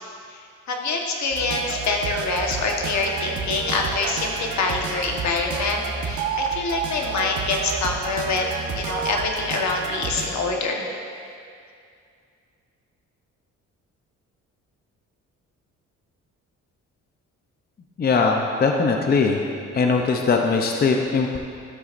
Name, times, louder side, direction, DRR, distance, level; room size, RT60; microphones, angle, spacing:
voice 1, 0.3-10.9, left 3 dB, 65° left, 1 dB, 1.3 m, -25 dB
sound 1, 1.3-10.3, right 5 dB, 70° right, 1.0 m, -30 dB
voice 2, 18.0-19.4 19.7-21.4, left 4 dB, 30° left, 2 dB, 0.6 m, -20 dB
12.5 x 7.9 x 2.6 m, 2.4 s
cardioid pair, 90°, 30 cm